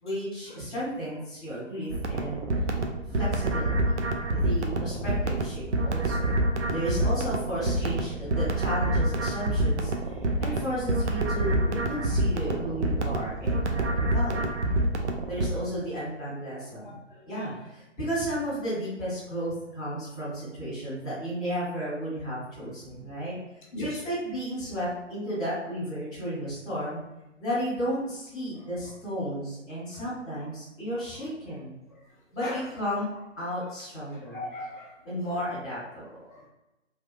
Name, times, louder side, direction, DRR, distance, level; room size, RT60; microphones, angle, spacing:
voice 1, 0.0-2.4 3.1-3.7 4.3-6.3 6.6-14.6 15.3-17.0 17.3-23.4 23.8-27.0 27.4-31.8 32.3-33.1 33.4-34.4 35.0-36.2, equal, 5° left, -18 dB, 0.6 m, -33 dB
sound 1, 1.9-15.5, right 1 dB, 65° right, 0.6 m, -27 dB
voice 2, 16.8-17.5 23.7-24.0 32.4-32.7 34.1-34.9 35.3-35.4 36.3-36.5, left 1 dB, 40° left, -3 dB, 0.9 m, -40 dB
3.4 x 2.4 x 2.3 m, 0.98 s
figure-of-eight pair, 145°, 38 cm